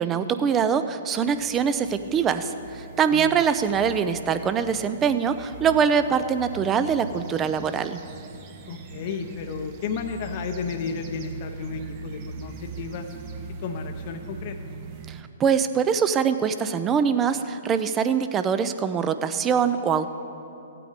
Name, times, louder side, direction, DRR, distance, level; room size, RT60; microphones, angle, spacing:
voice 1, 0.0-8.0 15.1-20.1, right 7 dB, 20° right, 11 dB, 0.5 m, -23 dB
sound 1, 1.2-15.2, right 4 dB, 40° right, 1.0 m, -41 dB
voice 2, 8.7-13.1 13.6-14.6, left 5 dB, 45° left, 6 dB, 0.8 m, -33 dB
15.5 x 8.5 x 5.0 m, 2.8 s
hypercardioid pair, 125°, 0 cm